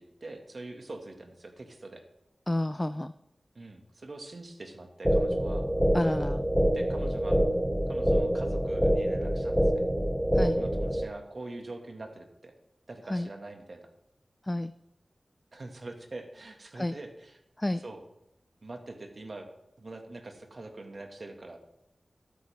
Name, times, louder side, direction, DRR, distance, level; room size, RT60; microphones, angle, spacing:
voice 1, 0.0-2.0 3.6-5.7 6.7-7.4 7.9-9.9 10.4-12.5 12.9-13.9 15.5-17.4 17.8-18.0 18.6-19.5 19.8-21.6, right 2 dB, 55° right, 3 dB, 2.0 m, -43 dB
voice 2, 2.5-3.1 5.9-6.4 10.3-10.5 13.1-13.3 14.4-14.7 16.7-16.9 17.6-17.8, left 1 dB, 20° left, 11 dB, 0.4 m, -30 dB
sound 1, 5.0-11.0, equal, 5° right, 1.5 m, -26 dB
13.5 x 12.5 x 3.6 m, 0.86 s
wide cardioid pair, 95°, 0 cm